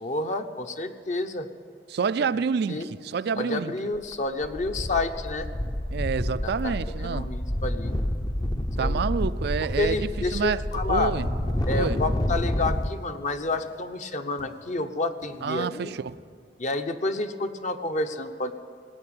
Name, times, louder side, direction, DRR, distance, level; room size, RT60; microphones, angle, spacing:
voice 1, 0.0-1.5 2.7-2.9 3.3-5.5 6.4-7.9 8.8-9.0 9.8-11.2 11.7-15.9 16.6-18.5, left 2 dB, 45° left, 0.9 m, -29 dB
voice 2, 1.9-3.8 5.9-7.3 8.8-10.6 10.9-11.3 11.7-12.0 15.4-16.1, right 6 dB, 65° right, 0.4 m, -28 dB
sound 1, 4.0-4.1 4.4-12.9, left 1 dB, 25° left, 0.6 m, -29 dB
sound 2, 10.8-16.1, left 1 dB, 75° left, 2.1 m, -53 dB
19.0 x 8.8 x 8.7 m
head